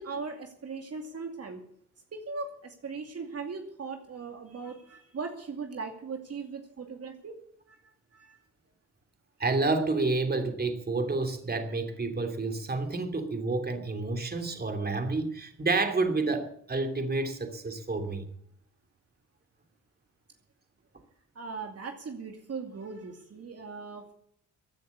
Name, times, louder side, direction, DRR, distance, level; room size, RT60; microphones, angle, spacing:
voice 1, 0.0-1.6 2.1-7.4 7.7-7.8 8.1-8.4 21.3-24.1, right 4 dB, 50° right, 4 dB, 2.5 m, -39 dB
voice 2, 9.4-18.2, right 3 dB, 30° right, 5 dB, 2.9 m, -29 dB
15.5 x 9.5 x 8.4 m, 0.68 s
cardioid pair, 80°, 32 cm